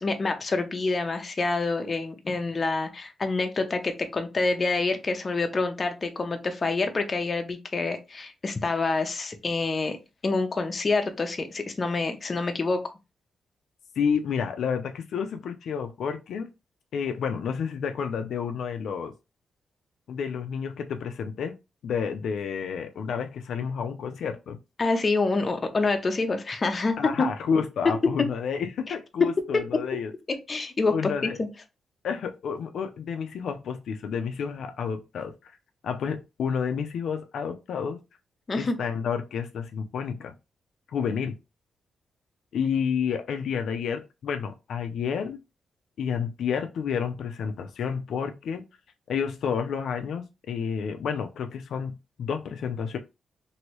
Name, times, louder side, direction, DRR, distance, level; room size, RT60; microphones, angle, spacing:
voice 1, 0.0-10.0 10.2-12.8 24.8-27.0 29.5-29.6 30.5-31.5 38.5-38.7, left 3 dB, 35° left, 0.6 m, -27 dB
voice 2, 14.0-16.5 16.9-19.1 20.1-21.5 21.8-24.6 27.0-30.1 30.9-31.4 32.0-35.6 35.8-38.0 38.5-40.3 40.9-41.4 42.5-45.4 46.0-48.6 49.1-53.0, left 6 dB, 75° left, 0.4 m, -30 dB
3.0 x 2.6 x 2.9 m
cardioid pair, 110°, 0 cm